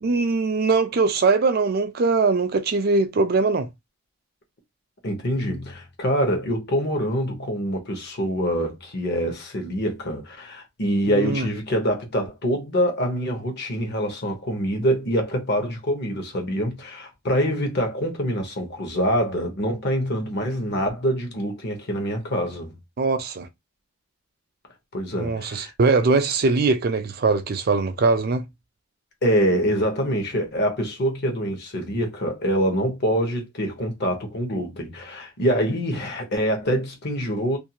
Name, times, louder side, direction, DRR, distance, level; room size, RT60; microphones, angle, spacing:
voice 1, 0.0-3.7 11.1-11.5 23.0-23.5 25.2-28.4, right 3 dB, 45° right, 0.4 m, -21 dB
voice 2, 5.0-22.7 24.9-25.7 29.2-37.6, equal, 50° left, 0.9 m, -25 dB
2.6 x 2.3 x 2.8 m
head